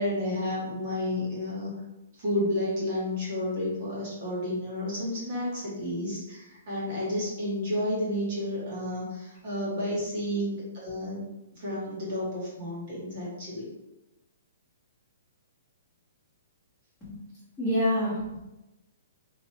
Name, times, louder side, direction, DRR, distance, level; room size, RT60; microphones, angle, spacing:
voice 1, 0.0-1.7 2.2-11.2 11.5-13.7, left 1 dB, 35° right, -6 dB, 1.2 m, -31 dB
voice 2, 17.6-18.4, equal, ahead, -15 dB, 1.2 m, -27 dB
3.2 x 2.5 x 4.3 m, 0.97 s
hypercardioid pair, 175°, 0 cm